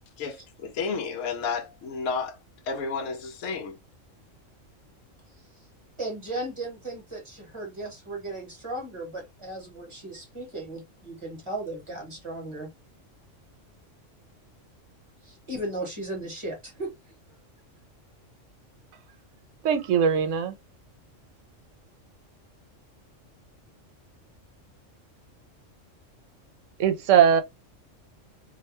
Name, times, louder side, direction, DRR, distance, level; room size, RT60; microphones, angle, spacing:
voice 1, 0.2-2.4 2.6-3.8, left 5 dB, 80° left, 1.0 m, -31 dB
voice 2, 6.0-12.7 15.2-16.9, right 2 dB, 25° right, 0.9 m, -36 dB
voice 3, 19.6-20.5 26.8-27.4, right 8 dB, 75° right, 0.9 m, -20 dB
2.6 x 2.1 x 2.9 m
omnidirectional pair, 1.3 m